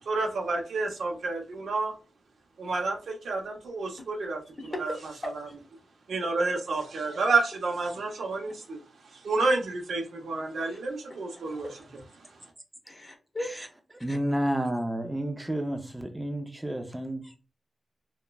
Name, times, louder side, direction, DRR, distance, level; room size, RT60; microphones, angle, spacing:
voice 1, 0.1-1.9 2.6-4.4 4.8-4.9 5.4-5.5 6.1-8.8 9.2-11.7, right 3 dB, 80° right, 0.6 m, -29 dB
voice 2, 4.6-5.2 10.6-10.8 12.9-13.5 14.1-14.2 17.2-17.4, left 1 dB, 25° left, 0.9 m, -38 dB
voice 3, 14.0-17.2, right 1 dB, 10° right, 0.5 m, -30 dB
3.0 x 2.2 x 2.2 m
wide cardioid pair, 95°, 0 cm